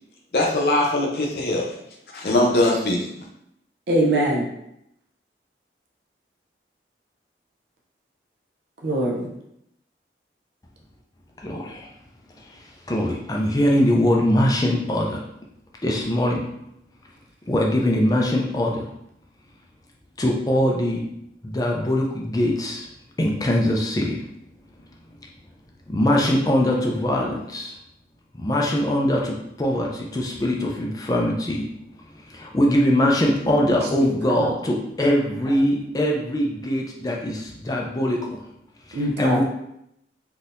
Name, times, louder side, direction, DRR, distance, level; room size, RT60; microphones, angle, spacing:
voice 1, 0.3-1.7 2.1-3.2, left 1 dB, 60° left, -1 dB, 0.7 m, -21 dB
voice 2, 3.9-4.4 8.8-9.3 34.0-34.5 38.9-39.4, right 1 dB, 75° right, -1 dB, 0.6 m, -23 dB
voice 3, 11.4-11.9 12.9-15.2 15.8-16.4 17.5-18.8 20.2-21.0 21.4-22.9 23.2-24.2 25.9-27.7 28.4-31.6 32.3-38.4 38.9-39.4, left 1 dB, 20° left, -1 dB, 0.4 m, -22 dB
3.7 x 2.7 x 2.5 m, 0.78 s
head